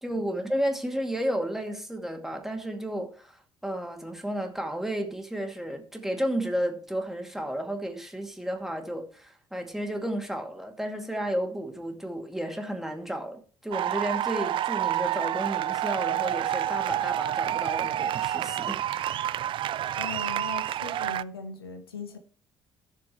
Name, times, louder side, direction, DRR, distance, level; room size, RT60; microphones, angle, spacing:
voice 1, 0.0-19.4, equal, 5° right, 2.2 m, -32 dB
sound 1, 13.7-21.2, right 12 dB, 45° right, 0.4 m, -29 dB
voice 2, 19.9-22.2, left 5 dB, 80° left, 1.1 m, -39 dB
16.0 x 6.8 x 3.1 m
figure-of-eight pair, 45°, 12 cm